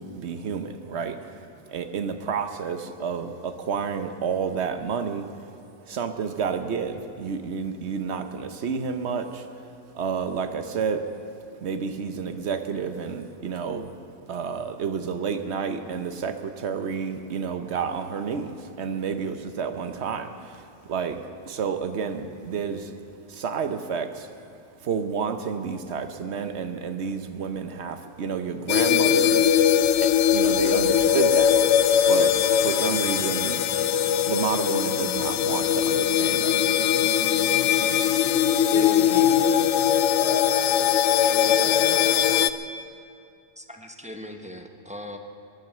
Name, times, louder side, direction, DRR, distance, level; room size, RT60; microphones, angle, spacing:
voice 1, 0.0-5.3 5.8-9.5 9.9-11.1 11.6-14.0 14.3-22.9 23.3-24.3 24.8-29.6 30.0-31.6 32.1-33.6 34.3-36.6, right 6 dB, 70° right, 8 dB, 1.2 m, -30 dB
sound 1, 28.7-42.5, left 9 dB, 90° left, 0.9 m, -21 dB
voice 2, 38.7-39.5 39.8-40.6 41.4-42.1, left 1 dB, 55° left, -4 dB, 4.4 m, -34 dB
voice 3, 40.9-41.8 43.6-45.2, left 1 dB, 5° right, 3 dB, 0.9 m, -41 dB
22.5 x 9.3 x 6.8 m, 2.5 s
omnidirectional pair, 1.2 m